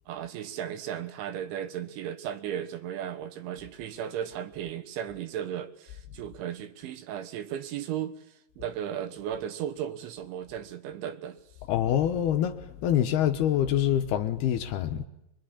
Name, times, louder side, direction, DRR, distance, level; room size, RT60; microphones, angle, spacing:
voice 1, 0.1-8.3 8.6-11.4, right 10 dB, 85° right, 3.8 m, -35 dB
voice 2, 11.7-15.1, left 10 dB, 70° left, 2.8 m, -25 dB
24.5 x 23.5 x 9.9 m
omnidirectional pair, 5.2 m